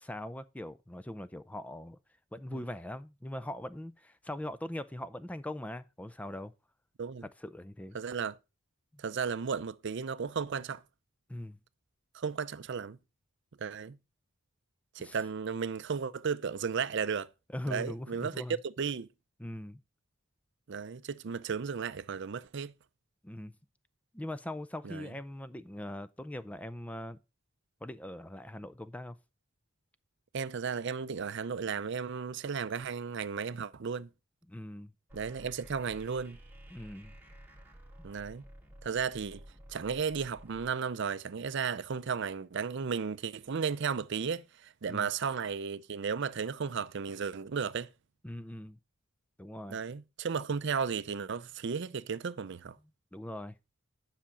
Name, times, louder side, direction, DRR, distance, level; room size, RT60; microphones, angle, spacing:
voice 1, 0.0-2.0 2.3-6.5 7.2-8.0 11.3-11.6 15.0-15.2 17.5-18.6 19.4-19.8 23.2-23.5 24.1-27.2 27.8-29.2 34.5-34.9 36.7-37.1 44.9-45.1 48.2-48.8 49.4-49.8 53.1-53.6, left 1 dB, 5° left, 0.4 m, -41 dB
voice 2, 7.9-8.4 9.0-10.8 12.1-13.0 13.6-14.0 14.9-17.3 17.7-18.4 18.8-19.1 20.7-22.7 24.8-25.1 30.3-34.1 35.1-36.4 38.0-38.4 38.8-39.4 39.7-47.9 49.7-52.8, right 6 dB, 60° right, 0.5 m, -34 dB
sound 1, 35.1-40.7, right 1 dB, 10° right, 1.9 m, -53 dB
10.0 x 5.8 x 5.0 m
head